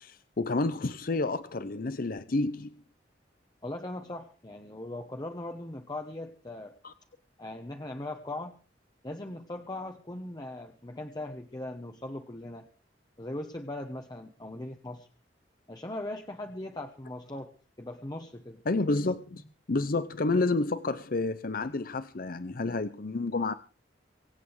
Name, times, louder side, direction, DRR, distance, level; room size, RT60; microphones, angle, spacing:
voice 1, 0.0-2.8 6.8-6.9 18.7-19.4 19.7-23.5, left 3 dB, 55° left, 0.7 m, -30 dB
voice 2, 3.6-6.7 7.4-8.5 9.0-12.7 13.2-15.1 15.7-18.6, left 1 dB, 25° left, 1.2 m, -39 dB
24.5 x 8.5 x 4.8 m
head